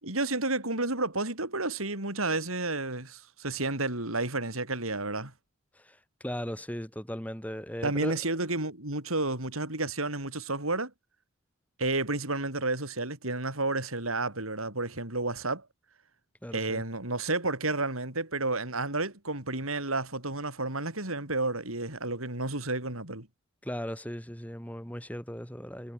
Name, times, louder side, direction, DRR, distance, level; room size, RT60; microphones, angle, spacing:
voice 1, 0.0-5.3 7.8-10.9 11.8-15.7 16.5-23.3, right 2 dB, 90° right, 7.4 m, -31 dB
voice 2, 5.7-8.2 16.4-16.8 23.6-25.9, equal, 5° left, 3.3 m, -37 dB
head